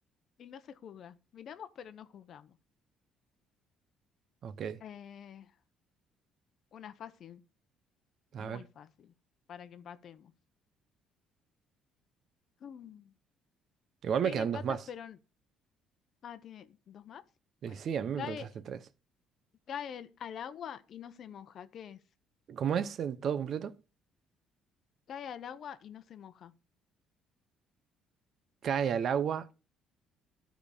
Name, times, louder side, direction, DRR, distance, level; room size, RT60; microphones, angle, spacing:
voice 1, 0.4-2.5 4.8-5.4 6.7-7.4 8.4-8.9 9.5-10.3 12.6-13.0 14.2-15.2 16.2-17.2 17.7-17.8 18.2-18.5 19.7-22.0 25.1-26.5, left 8 dB, 45° left, 0.8 m, -45 dB
voice 2, 4.4-4.8 8.3-8.6 14.0-14.9 17.6-18.8 22.5-23.7 28.6-29.5, right 8 dB, 45° right, 0.6 m, -32 dB
13.0 x 5.1 x 4.9 m
cardioid pair, 150°, 0 cm